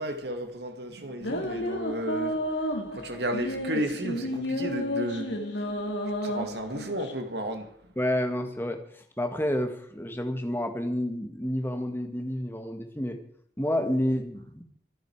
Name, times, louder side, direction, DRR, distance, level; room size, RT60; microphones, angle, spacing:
voice 1, 0.0-2.4 2.9-5.4 6.2-7.7, right 1 dB, 65° right, 2.4 m, -33 dB
sound 1, 1.2-7.1, equal, 85° left, 3.0 m, -31 dB
voice 2, 8.0-8.8 9.2-13.2 13.6-14.6, left 1 dB, 15° left, 1.8 m, -29 dB
24.0 x 10.5 x 4.9 m
head